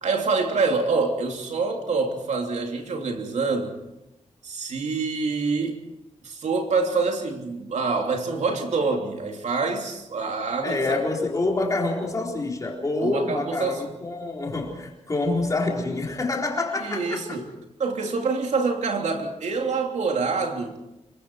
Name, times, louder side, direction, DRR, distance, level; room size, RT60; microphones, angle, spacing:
voice 1, 0.0-3.7 4.4-5.8 6.2-11.0 13.0-13.8 16.8-17.5 17.8-20.8, right 4 dB, 65° right, 3.2 m, -26 dB
voice 2, 10.6-17.2, left 2 dB, 25° left, 4.3 m, -27 dB
27.5 x 23.5 x 4.7 m
wide cardioid pair, 165°, 13 cm